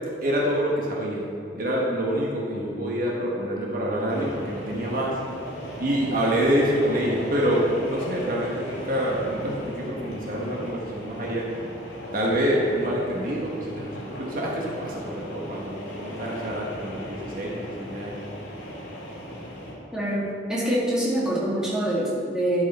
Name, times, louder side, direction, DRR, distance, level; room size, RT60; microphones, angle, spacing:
voice 1, 0.2-1.3 1.5-5.2 5.8-11.5 12.1-18.2, equal, 50° right, -3 dB, 1.2 m, -26 dB
sound 1, 4.1-19.7, equal, 65° left, 2.2 m, -38 dB
voice 2, 19.9-22.6, right 1 dB, 5° right, -7 dB, 1.9 m, -25 dB
11.0 x 6.4 x 4.2 m, 2.5 s
head